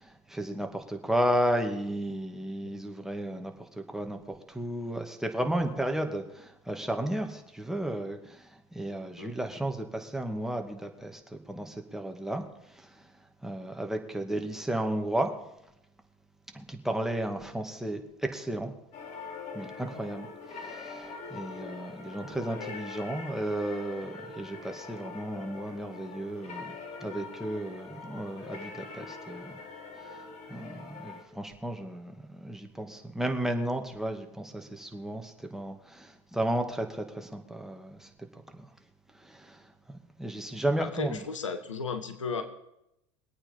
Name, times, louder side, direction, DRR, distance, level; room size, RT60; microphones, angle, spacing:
voice 1, 0.0-4.2 4.5-8.5 8.7-11.2 11.5-12.4 12.8-13.1 13.4-15.3 16.5-18.7 19.5-26.7 27.0-29.6 30.0-30.2 30.5-38.1 38.5-38.7 39.2-39.6 39.9-41.2, right 1 dB, 5° right, 4 dB, 2.3 m, -33 dB
sound 1, 18.9-31.2, left 4 dB, 45° left, 3.4 m, -43 dB
voice 2, 40.8-42.4, left 5 dB, 90° left, 9 dB, 1.5 m, -34 dB
22.5 x 8.8 x 5.4 m, 0.84 s
hypercardioid pair, 80°, 15 cm